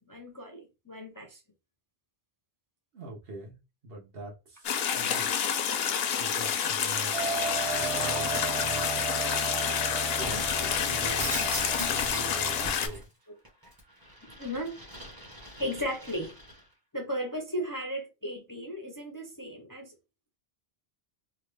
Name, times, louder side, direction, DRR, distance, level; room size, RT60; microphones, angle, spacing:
voice 1, 0.0-1.4 10.6-10.7 13.3-13.4 14.4-14.8 15.6-16.3 16.9-19.9, equal, 25° left, 0.5 m, -35 dB
voice 2, 2.9-3.6 3.8-5.5 6.2-7.4 7.8-9.2 10.0-11.5 11.8-13.1, right 2 dB, 65° right, 1.2 m, -44 dB
sound 1, 4.6-12.9, left 8 dB, 70° left, 0.8 m, -29 dB
sound 2, 7.1-12.7, right 4 dB, 90° right, 0.9 m, -35 dB
Shatter, 10.2-13.0 13.4-16.6, equal, 20° right, 0.9 m, -39 dB
3.0 x 2.3 x 3.2 m
omnidirectional pair, 1.1 m